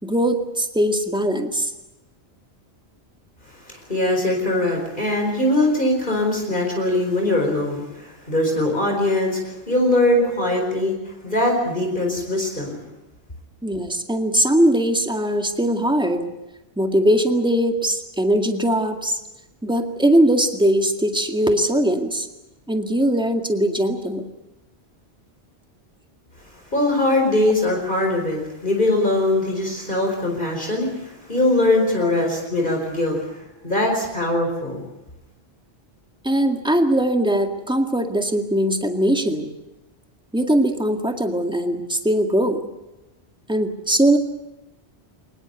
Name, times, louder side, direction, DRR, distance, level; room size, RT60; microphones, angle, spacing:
voice 1, 0.0-1.7 10.2-10.6 13.6-16.3 16.8-19.2 19.6-22.3 22.7-24.2 31.8-32.1 36.2-39.5 40.3-42.6 43.5-44.2, right 1 dB, 5° right, 5 dB, 2.0 m, -20 dB
voice 2, 3.6-12.7 26.7-33.4 33.6-34.8, left 1 dB, 50° left, 1 dB, 4.9 m, -21 dB
23.5 x 20.5 x 8.1 m, 0.97 s
omnidirectional pair, 1.1 m